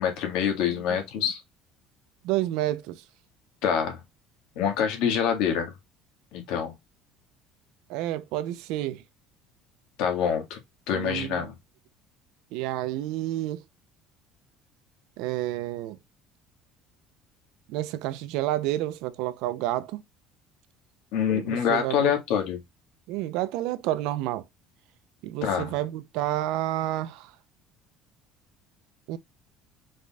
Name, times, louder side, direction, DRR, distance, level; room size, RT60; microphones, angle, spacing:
voice 1, 0.0-1.4 3.6-4.0 4.6-5.7 6.3-6.7 10.0-10.6 10.9-11.5 21.1-22.6 25.4-25.7, left 8 dB, 75° left, 1.8 m, -26 dB
voice 2, 2.2-3.0 7.9-9.0 10.9-11.5 12.5-13.6 15.2-16.0 17.7-20.0 21.3-22.1 23.1-24.4 25.2-27.3 29.1-29.2, right 14 dB, 80° right, 0.6 m, -30 dB
5.0 x 4.2 x 2.3 m
cardioid pair, 145°, 0 cm